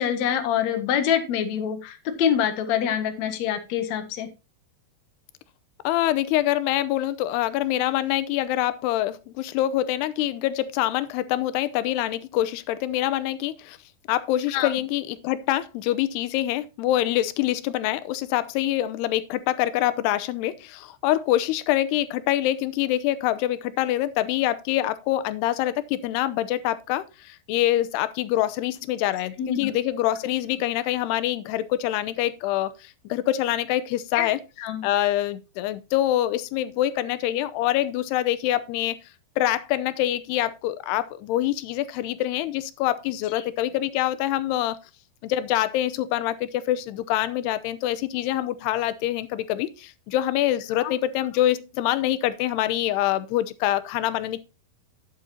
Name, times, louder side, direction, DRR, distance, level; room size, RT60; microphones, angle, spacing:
voice 1, 0.0-4.3 14.5-14.7 29.4-29.7 34.2-34.3 34.6-34.8 43.4-43.5 50.8-50.9, left 9 dB, 55° left, 2.3 m, -25 dB
voice 2, 5.8-13.8 14.1-34.4 34.8-39.0 39.4-44.8 45.2-54.4, left 13 dB, 85° left, 2.8 m, -25 dB
11.5 x 8.9 x 2.8 m
omnidirectional pair, 4.8 m